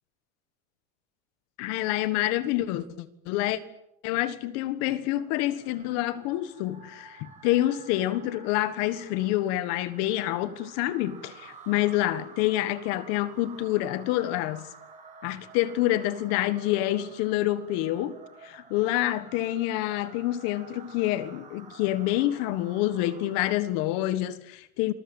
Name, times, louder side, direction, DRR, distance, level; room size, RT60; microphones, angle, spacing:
voice 1, 1.6-3.6 4.0-14.7 15.2-18.2 18.4-24.9, left 14 dB, 40° left, 1.6 m, -27 dB
sound 1, 4.9-23.8, right 5 dB, 20° right, 4.8 m, -51 dB
27.0 x 21.0 x 9.1 m
supercardioid pair, 175°, 40 cm